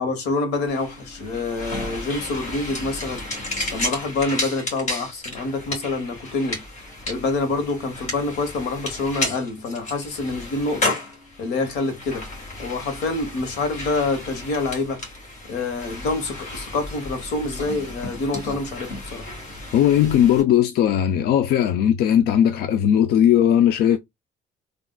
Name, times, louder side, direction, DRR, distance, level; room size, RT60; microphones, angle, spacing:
voice 1, 0.0-3.2 3.7-6.6 7.1-11.0 11.4-12.3 12.6-15.0 15.5-19.3, left 3 dB, 90° left, 1.1 m, -26 dB
sound 1, 0.7-20.4, left 2 dB, 45° left, 1.6 m, -33 dB
voice 2, 19.7-24.0, left 10 dB, 65° left, 0.4 m, -18 dB
3.8 x 2.5 x 2.2 m
cardioid pair, 110°, 17 cm